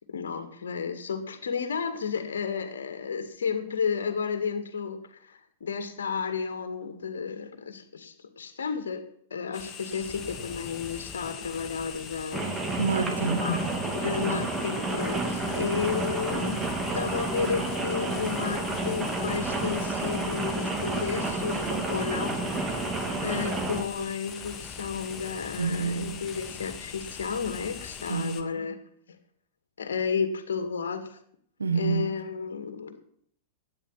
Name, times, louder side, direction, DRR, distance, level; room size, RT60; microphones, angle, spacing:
voice 1, 0.1-9.0 9.3-12.5 13.4-13.6 13.9-16.6 16.9-22.4 23.2-28.8 29.8-31.2 31.7-33.0, left 6 dB, 70° left, 8 dB, 2.1 m, -32 dB
sound 1, 9.5-28.4, left 7 dB, 30° left, 2.0 m, -41 dB
Rain, 12.3-23.8, right 2 dB, 15° right, 2.4 m, -30 dB
voice 2, 12.8-13.4 25.6-26.1 28.1-28.5 31.6-32.1, right 5 dB, 75° right, 8 dB, 1.6 m, -28 dB
12.5 x 9.5 x 7.5 m, 0.64 s
figure-of-eight pair, 100°, 0 cm